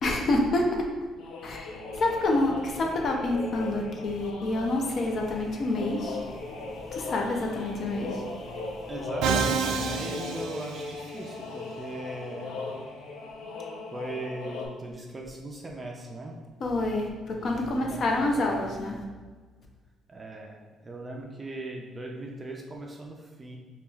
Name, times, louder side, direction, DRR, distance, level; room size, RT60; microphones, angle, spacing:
voice 1, 0.0-0.8 1.4-6.2 6.9-8.2 16.6-19.0, left 2 dB, 40° left, 1 dB, 0.5 m, -27 dB
sound 1, 1.2-14.7, left 3 dB, 85° left, 0.6 m, -39 dB
voice 2, 8.9-12.5 13.9-16.4 17.3-18.7 20.1-20.6 20.8-23.6, right 2 dB, 20° right, 0 dB, 0.4 m, -39 dB
Musical instrument, 9.2-11.3, right 5 dB, 90° right, 0.3 m, -28 dB
4.7 x 3.0 x 2.3 m, 1.4 s
cardioid pair, 165°, 0 cm